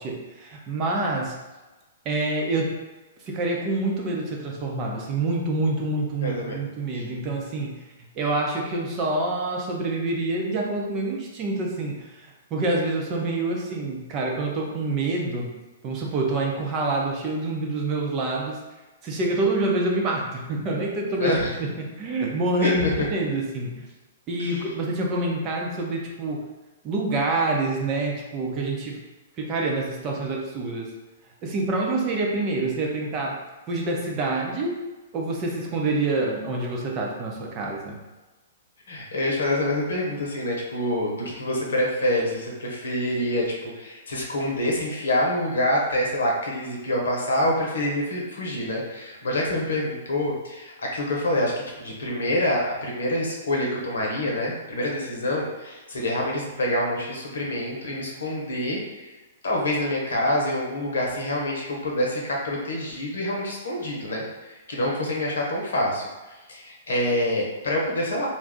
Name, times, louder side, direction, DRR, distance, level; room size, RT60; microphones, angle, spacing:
voice 1, 0.0-1.3 2.0-2.7 3.3-7.7 8.2-15.5 15.8-18.6 19.0-23.9 24.3-26.5 26.8-29.0 29.4-30.9 31.4-33.4 33.7-34.8 35.1-38.0, right 2 dB, 30° right, -1 dB, 0.7 m, -27 dB
voice 2, 6.2-6.6 6.9-7.0 21.2-21.5 22.6-22.9 24.4-24.6 38.9-59.1 59.4-66.1 66.5-68.3, left 1 dB, 70° left, -2 dB, 0.9 m, -26 dB
2.6 x 2.3 x 3.7 m, 1.1 s
figure-of-eight pair, 115°, 0 cm